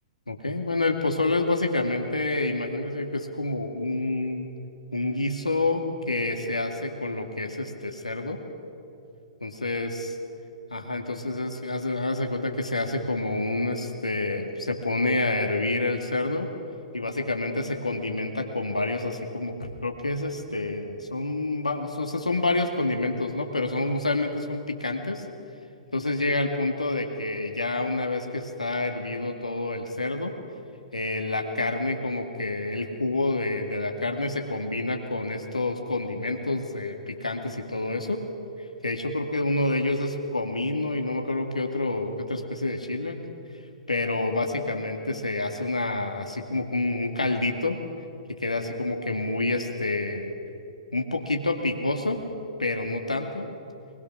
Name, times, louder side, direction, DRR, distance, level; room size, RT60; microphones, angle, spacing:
voice 1, 0.3-4.5 4.9-8.4 9.4-10.2 10.7-16.5 16.9-25.2 25.9-30.3 30.9-38.2 38.8-43.2 43.9-47.8 48.4-50.3 50.9-52.2 52.6-53.5, left 2 dB, 85° left, 3 dB, 2.3 m, -28 dB
24.5 x 21.0 x 6.2 m, 2.6 s
figure-of-eight pair, 115°, 4 cm